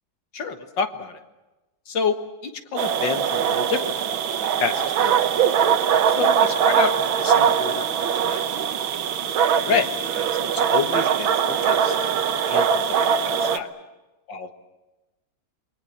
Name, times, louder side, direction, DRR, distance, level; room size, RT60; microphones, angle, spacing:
voice 1, 0.3-1.2 1.9-3.8 4.4-5.6 6.1-7.9 8.2-8.4 9.6-11.9 12.5-12.8 13.1-13.7 14.3-14.5, left 5 dB, 65° left, 8 dB, 2.2 m, -28 dB
sound 1, 2.8-13.6, right 7 dB, 80° right, 1.8 m, -21 dB
28.0 x 22.5 x 7.4 m, 1.1 s
omnidirectional pair, 2.2 m